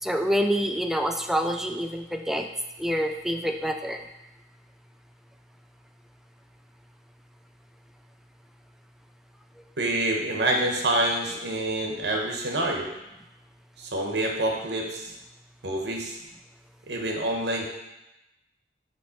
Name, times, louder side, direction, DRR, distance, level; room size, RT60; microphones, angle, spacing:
voice 1, 0.0-2.5 2.8-4.0, equal, ahead, 5 dB, 0.3 m, -27 dB
voice 2, 9.8-12.9 13.8-15.1 15.6-16.2 16.9-17.7, right 1 dB, 75° right, 1 dB, 1.0 m, -27 dB
7.0 x 3.1 x 4.4 m, 0.95 s
head